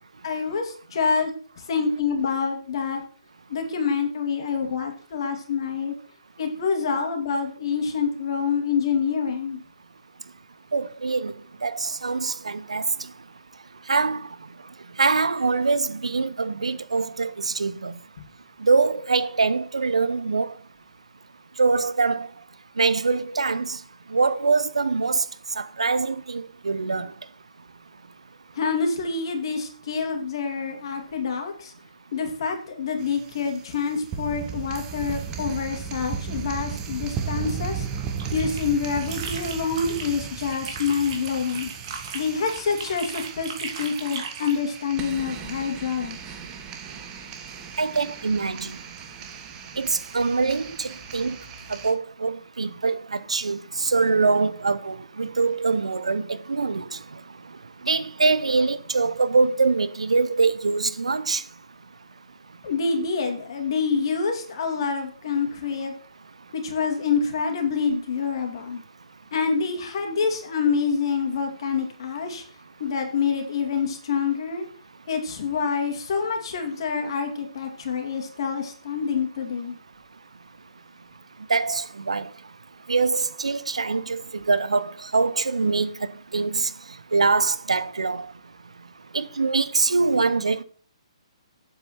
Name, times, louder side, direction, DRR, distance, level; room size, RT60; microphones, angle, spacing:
voice 1, 0.2-1.3 1.7-3.0 3.5-5.9 6.4-9.6 28.6-31.7 32.1-37.9 38.3-41.7 42.1-46.3 62.6-65.9 66.5-68.8 69.3-72.4 72.8-74.7 75.1-79.8, left 5 dB, 50° left, 2.5 m, -26 dB
voice 2, 10.7-11.3 11.6-12.8 13.9-14.2 15.0-17.9 18.6-20.5 21.6-22.3 22.8-23.8 24.1-25.2 25.6-27.1 47.8-48.7 49.8-51.4 51.8-53.0 53.3-56.8 57.9-61.4 81.5-82.3 82.9-85.9 86.3-86.7 87.1-88.3 89.1-90.6, right 4 dB, 80° right, 0.7 m, -23 dB
sound 1, 33.0-51.9, right 7 dB, 20° right, 1.4 m, -36 dB
sound 2, 38.0-40.1 40.4-44.6, right 5 dB, 50° right, 2.7 m, -37 dB
9.1 x 7.8 x 4.3 m
figure-of-eight pair, 135°, 3 cm